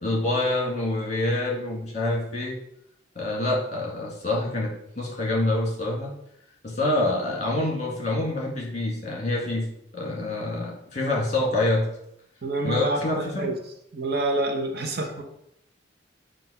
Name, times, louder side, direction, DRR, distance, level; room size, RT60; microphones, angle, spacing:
voice 1, 0.0-2.6 3.2-6.1 6.6-9.7 9.9-11.9 12.6-13.5, left 2 dB, 40° left, -2 dB, 1.9 m, -26 dB
voice 2, 12.4-13.6 13.9-15.2, right 2 dB, 55° right, 3 dB, 0.9 m, -27 dB
7.5 x 2.6 x 5.6 m, 0.77 s
head